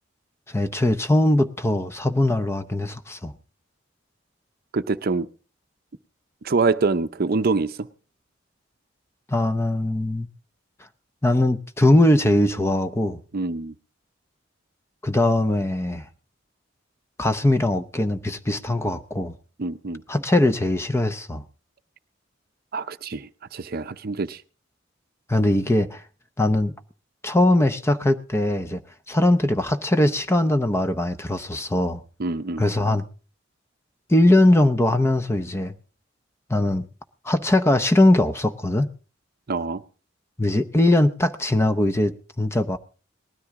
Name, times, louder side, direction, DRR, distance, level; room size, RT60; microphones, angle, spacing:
voice 1, 0.5-3.3 9.3-10.3 11.2-13.2 15.0-16.0 17.2-19.3 20.1-21.4 25.3-26.0 26.4-26.7 27.2-28.8 29.1-32.0 32.6-33.0 34.1-35.7 36.5-36.9 37.2-38.9 40.4-42.8, left 1 dB, 15° left, 0.6 m, -21 dB
voice 2, 4.7-5.3 6.4-7.9 13.3-13.7 19.6-20.0 22.7-24.4 32.2-32.6 39.5-39.8, right 3 dB, 50° right, 0.6 m, -25 dB
19.0 x 13.0 x 3.6 m
head